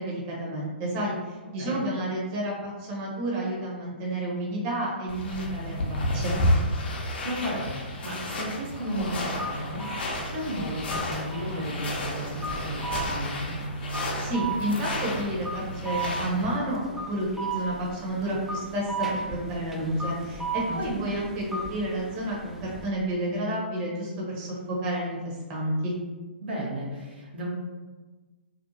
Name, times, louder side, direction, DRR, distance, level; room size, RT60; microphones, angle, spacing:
voice 1, 0.0-6.4 14.2-25.9, right 1 dB, 35° right, -4 dB, 0.8 m, -30 dB
sound 1, 5.1-16.6, left 1 dB, 60° left, 0.6 m, -31 dB
voice 2, 7.2-13.6 20.6-21.0 26.4-27.5, equal, 70° right, -4 dB, 0.9 m, -34 dB
sound 2, 9.0-22.9, right 3 dB, 5° right, 0.3 m, -36 dB
2.6 x 2.4 x 2.7 m, 1.3 s
figure-of-eight pair, 125°, 6 cm